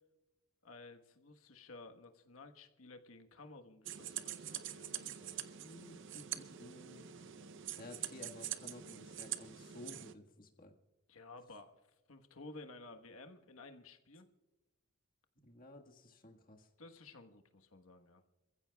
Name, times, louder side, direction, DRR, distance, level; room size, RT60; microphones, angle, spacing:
voice 1, 0.6-5.4 11.1-11.8 12.1-14.3 16.8-18.2, left 2 dB, 75° left, 6 dB, 1.3 m, -54 dB
sound 1, 3.8-10.1, right 11 dB, 60° right, 0.7 m, -45 dB
voice 2, 5.6-7.3 7.8-10.7 15.3-16.7, left 1 dB, 40° left, 2 dB, 1.6 m, -54 dB
28.0 x 15.0 x 2.3 m, 1.1 s
head